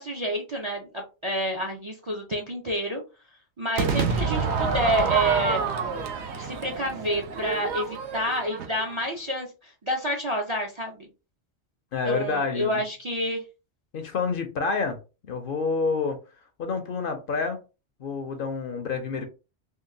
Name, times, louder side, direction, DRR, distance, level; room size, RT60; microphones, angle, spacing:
voice 1, 0.0-3.0 3.6-5.6 6.3-11.1 12.0-13.4, right 1 dB, 40° right, 0.4 m, -28 dB
Crowd / Fireworks, 3.8-9.0, right 5 dB, 75° right, 0.9 m, -28 dB
voice 2, 11.9-12.8 13.9-15.0 15.3-16.2 16.6-17.6 18.0-19.3, left 4 dB, 60° left, 0.7 m, -28 dB
3.7 x 2.3 x 2.6 m
omnidirectional pair, 1.2 m